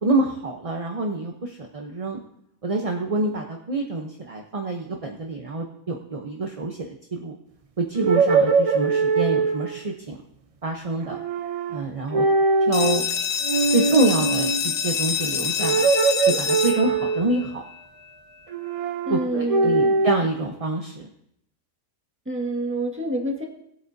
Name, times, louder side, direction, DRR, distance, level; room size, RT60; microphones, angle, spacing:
voice 1, 0.0-2.2 2.6-7.3 7.8-10.2 10.6-11.2 11.7-12.3 12.7-13.1 13.7-15.9 16.3-17.6 19.1-21.1, right 2 dB, 30° right, 2 dB, 0.7 m, -26 dB
sound 1, 8.0-9.8 11.1-11.8 12.1-13.0 13.4-14.6 15.6-17.4 18.5-20.2, right 4 dB, 70° right, 0.3 m, -22 dB
sound 2, 12.7-18.2, left 7 dB, 50° left, 0.8 m, -27 dB
voice 2, 19.1-19.9 22.2-23.4, right 2 dB, 10° right, 0 dB, 1.6 m, -27 dB
19.0 x 8.5 x 2.7 m, 0.74 s
omnidirectional pair, 1.5 m